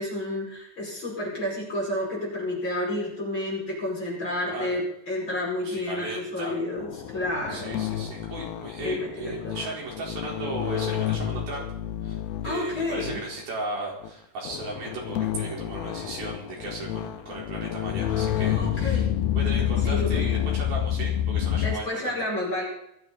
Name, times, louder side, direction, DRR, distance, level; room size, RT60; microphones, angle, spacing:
voice 1, 0.0-7.9 8.8-9.7 12.4-13.2 18.6-19.0 19.8-20.2 21.6-22.6, left 1 dB, 30° left, -3 dB, 6.0 m, -30 dB
voice 2, 4.4-4.8 5.6-6.5 7.5-11.7 12.0-12.2 12.4-19.1 19.3-22.2, right 2 dB, 70° right, -3 dB, 6.4 m, -36 dB
sound 1, 6.8-13.4 14.0-14.1 14.4-21.8, left 10 dB, 85° left, 2.9 m, -29 dB
19.0 x 14.5 x 4.2 m, 0.77 s
omnidirectional pair, 4.4 m